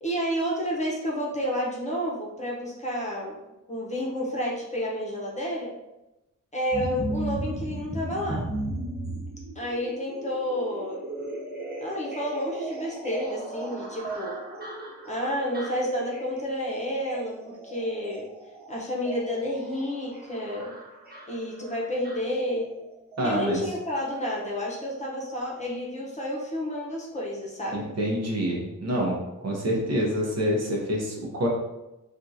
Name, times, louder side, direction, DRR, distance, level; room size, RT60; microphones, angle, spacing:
voice 1, 0.0-3.3 3.7-5.7 6.5-8.4 9.5-11.0 11.8-14.3 15.0-18.3 18.7-20.7 21.3-22.7 23.2-27.9, equal, 20° left, -4 dB, 0.9 m, -30 dB
sound 1, 6.7-22.8 23.1-23.2, right 1 dB, 30° right, 1.2 m, -36 dB
voice 2, 23.2-23.6 27.7-29.2 29.4-31.5, equal, 55° right, -2 dB, 0.9 m, -26 dB
3.6 x 2.5 x 2.7 m, 0.97 s
wide cardioid pair, 95°, 31 cm